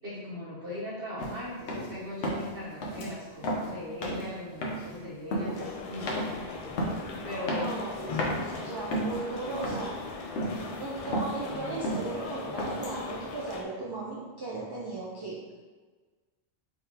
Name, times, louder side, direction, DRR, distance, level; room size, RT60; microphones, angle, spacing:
voice 1, 0.0-6.4 7.2-7.6, left 1 dB, 60° right, -11 dB, 1.2 m, -39 dB
sound 1, 1.2-1.4 1.7-1.9 2.2-2.6 2.8-3.1 3.4-3.7 4.0-4.3 4.6-5.0 5.3-5.6 6.1-6.4 6.8-7.0 7.5-7.9 8.2-8.4 8.9-9.3 9.6-10.0 10.4-10.6 10.9-11.4 11.8-12.1 12.6-13.0, equal, 85° left, 1.1 m, -32 dB
sound 2, 5.5-13.6, left 4 dB, 60° left, 0.4 m, -39 dB
voice 2, 7.5-10.0 10.6-15.6, right 3 dB, 40° right, -6 dB, 0.3 m, -37 dB
3.8 x 3.7 x 2.8 m, 1.3 s
omnidirectional pair, 1.2 m